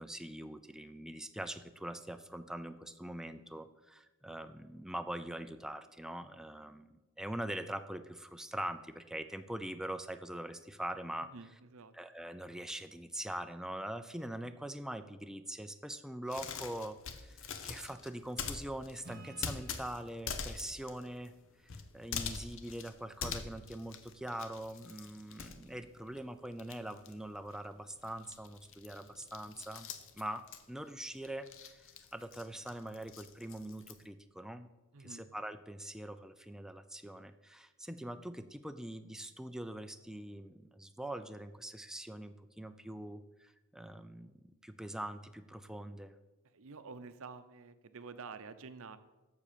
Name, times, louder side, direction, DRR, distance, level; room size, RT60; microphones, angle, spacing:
voice 1, 0.0-11.3 11.9-21.3 21.6-29.9 30.1-34.7 35.0-46.1, right 1 dB, 5° right, 9 dB, 0.4 m, -43 dB
voice 2, 11.2-11.9 34.9-35.3 46.5-49.0, right 4 dB, 65° right, 11 dB, 0.7 m, -49 dB
sound 1, 16.3-26.3 26.5-34.0, left 6 dB, 60° left, 0.8 m, -44 dB
Acoustic guitar / Strum, 19.0-22.5, right 1 dB, 45° right, 1.1 m, -57 dB
7.5 x 6.8 x 6.8 m, 1.1 s
head